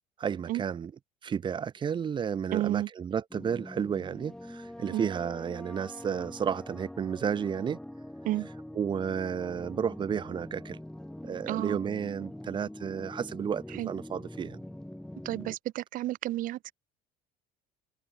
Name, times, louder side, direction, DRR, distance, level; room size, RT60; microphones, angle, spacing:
voice 1, 0.2-0.9 1.2-7.8 8.7-10.8 11.2-14.6, right 7 dB, 30° right, 0.8 m, -32 dB
voice 2, 2.5-2.9 4.9-5.1 8.2-8.5 11.5-11.8 13.7-13.9 15.2-16.7, right 15 dB, 60° right, 1.0 m, -31 dB
sound 1, 3.3-15.6, left 1 dB, 5° left, 4.9 m, -44 dB
cardioid pair, 130°, 16 cm